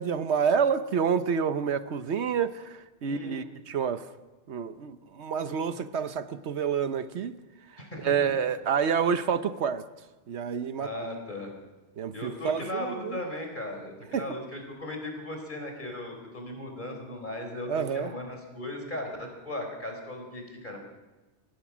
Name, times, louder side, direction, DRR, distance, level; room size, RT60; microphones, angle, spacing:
voice 1, 0.0-4.1 4.5-7.4 7.7-9.8 10.3-10.9 12.0-13.2 14.1-14.3 17.7-18.1, right 7 dB, 75° right, 11 dB, 1.1 m, -28 dB
voice 2, 3.0-3.4 7.8-8.3 10.8-11.5 12.1-20.8, left 1 dB, 45° left, 3 dB, 4.3 m, -37 dB
25.0 x 18.0 x 6.2 m, 1.2 s
omnidirectional pair, 1.2 m